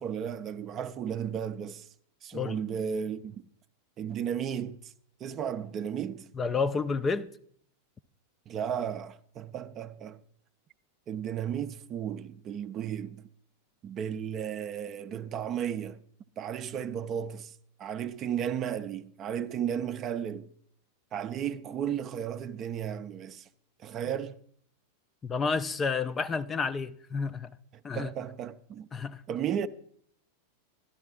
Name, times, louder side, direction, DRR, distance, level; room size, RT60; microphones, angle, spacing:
voice 1, 0.0-1.9 2.2-3.4 4.0-4.9 5.2-6.3 8.5-10.2 11.1-13.2 13.8-16.0 16.4-17.5 17.8-20.5 21.1-23.5 23.8-24.4 27.9-28.9 29.3-29.7, right 8 dB, 30° right, 0.5 m, -34 dB
voice 2, 6.4-7.3 25.2-27.5 27.8-28.1 28.9-29.2, left 5 dB, 20° left, 0.4 m, -30 dB
12.5 x 11.5 x 3.7 m
figure-of-eight pair, 90°, 0 cm